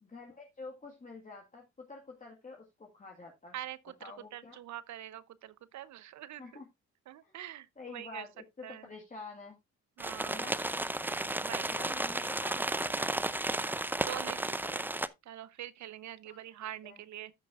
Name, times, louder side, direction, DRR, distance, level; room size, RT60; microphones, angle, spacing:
voice 1, 0.0-3.5 4.0-4.6 6.4-6.7 7.2-7.3 7.8-9.6 10.3-10.6 11.7-13.0 16.3-16.4 16.8-17.0, left 4 dB, 25° left, 1.8 m, -48 dB
voice 2, 3.5-6.6 7.1-8.3 8.6-8.9 10.0-10.5 11.4-11.8 14.0-14.9 15.2-17.3, right 12 dB, 70° right, 0.8 m, -44 dB
sound 1, 10.0-15.1, right 2 dB, 5° right, 0.5 m, -33 dB
13.5 x 6.0 x 2.5 m
cardioid pair, 90°, 30 cm